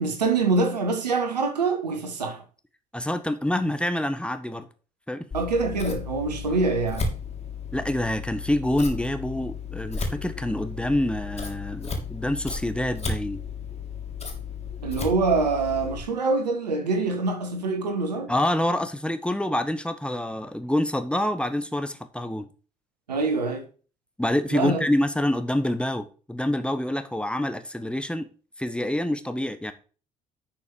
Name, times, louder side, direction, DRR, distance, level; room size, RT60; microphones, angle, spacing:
voice 1, 0.0-2.4 5.3-7.1 14.8-18.3 23.1-23.6 24.5-24.8, right 3 dB, 80° right, 1.6 m, -25 dB
voice 2, 2.9-4.7 5.1-5.3 7.7-13.4 18.3-22.5 24.2-28.3 28.6-29.7, left 1 dB, 5° left, 1.3 m, -26 dB
Scissors, 5.3-16.0, left 4 dB, 30° left, 3.1 m, -34 dB
11.0 x 5.8 x 4.8 m
figure-of-eight pair, 45°, 21 cm